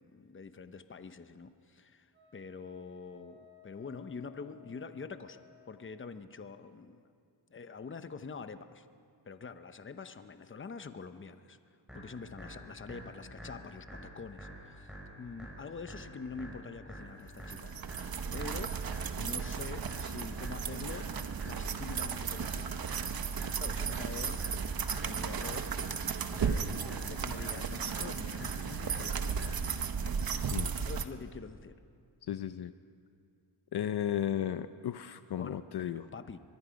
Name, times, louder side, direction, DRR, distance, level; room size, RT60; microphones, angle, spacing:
voice 1, 0.0-3.4 3.6-7.1 7.5-8.9 9.2-11.6 11.9-17.7 18.0-18.8 19.2-21.1 21.4-22.8 23.6-24.7 25.0-25.7 26.3-31.8 35.4-36.4, left 5 dB, 25° left, 10 dB, 0.8 m, -45 dB
Wind instrument woodwind instrument, 2.1-5.8, left 8 dB, 25° right, 4.2 m, -59 dB
sound 1, 11.9-29.9, equal, ahead, 6.2 m, -49 dB
sound 2, 17.4-31.0, right 6 dB, 50° right, 1.0 m, -35 dB
voice 2, 32.3-32.7 33.7-36.1, left 10 dB, 60° left, 11 dB, 0.6 m, -34 dB
24.5 x 22.0 x 5.2 m, 2.3 s
wide cardioid pair, 125°, 46 cm